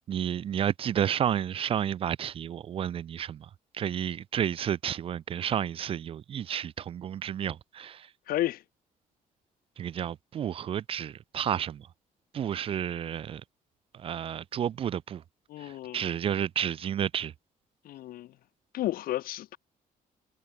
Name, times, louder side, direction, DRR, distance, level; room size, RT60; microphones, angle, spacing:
voice 1, 0.1-3.5 3.7-8.1 9.8-11.8 12.3-13.4 14.0-15.2 15.6-17.3, right 9 dB, 40° right, 0.4 m, -31 dB
voice 2, 8.3-8.6 15.5-16.0 17.8-18.3 18.7-19.6, left 14 dB, 85° left, 1.1 m, -32 dB
cardioid pair, 160°, 15 cm